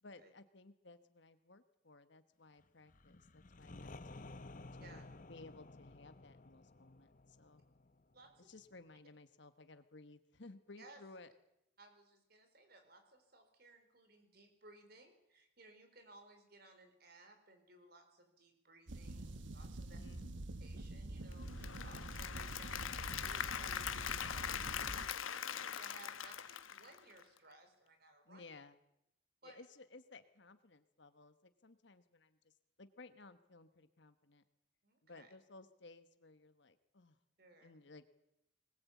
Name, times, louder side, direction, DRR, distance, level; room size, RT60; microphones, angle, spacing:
voice 1, 0.0-5.0 5.3-7.6 8.4-11.3 19.8-20.3 28.2-28.8 29.4-32.5 32.8-34.4 35.0-37.2 37.6-38.0, left 3 dB, 60° left, 11 dB, 1.2 m, -58 dB
sound 1, 2.9-8.6, left 2 dB, 40° left, 0.9 m, -54 dB
voice 2, 8.1-8.5 10.8-11.0 11.8-20.0 20.6-28.4 29.4-29.7 34.8-35.3 37.4-37.8, right 2 dB, 50° right, 7 dB, 4.4 m, -61 dB
sound 2, 18.9-25.1, right 2 dB, 70° right, 1.1 m, -47 dB
Applause / Crowd, 21.3-27.4, left 8 dB, 90° left, 1.1 m, -42 dB
21.0 x 20.5 x 8.4 m, 0.84 s
head